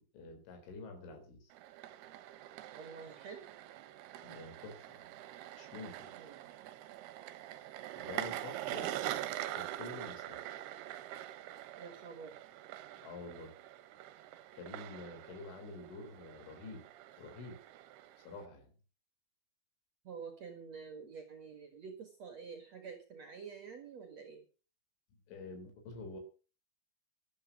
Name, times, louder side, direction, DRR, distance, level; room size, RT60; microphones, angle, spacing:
voice 1, 0.0-1.5 4.2-5.0 5.6-6.1 8.0-8.9 9.6-10.4 13.0-13.5 14.5-16.9 17.2-17.6 18.2-18.7 25.3-26.2, left 3 dB, 85° left, 6 dB, 6.5 m, -48 dB
sound 1, 1.5-18.5, right 13 dB, 75° right, 2.6 m, -44 dB
voice 2, 2.7-3.5 6.2-6.5 11.8-12.4 20.0-24.4, right 5 dB, 55° right, 6 dB, 2.1 m, -48 dB
12.5 x 12.0 x 6.0 m, 0.36 s
omnidirectional pair, 5.3 m